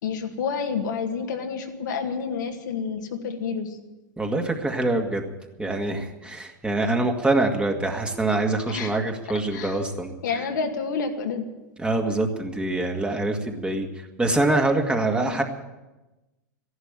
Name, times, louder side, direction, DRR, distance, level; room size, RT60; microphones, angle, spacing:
voice 1, 0.0-3.8 8.7-9.0 9.5-9.8 10.2-11.4 15.2-15.4, left 5 dB, 80° left, 3 dB, 2.1 m, -29 dB
voice 2, 4.2-5.2 5.6-10.1 11.8-15.4, right 2 dB, 10° right, 3 dB, 2.0 m, -24 dB
14.0 x 11.5 x 9.0 m, 1.1 s
hypercardioid pair, 105°, 10 cm